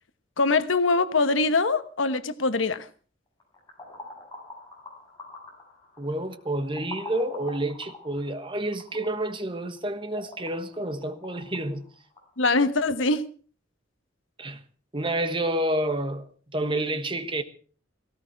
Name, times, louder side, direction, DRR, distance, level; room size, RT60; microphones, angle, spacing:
voice 1, 0.4-2.9 12.4-13.3, left 3 dB, 80° left, 1.2 m, -23 dB
sound 1, 3.4-12.3, left 2 dB, 20° left, 7.1 m, -45 dB
voice 2, 6.0-11.9 14.4-14.6 14.9-17.4, right 1 dB, 25° right, 1.4 m, -29 dB
18.0 x 16.5 x 4.6 m
head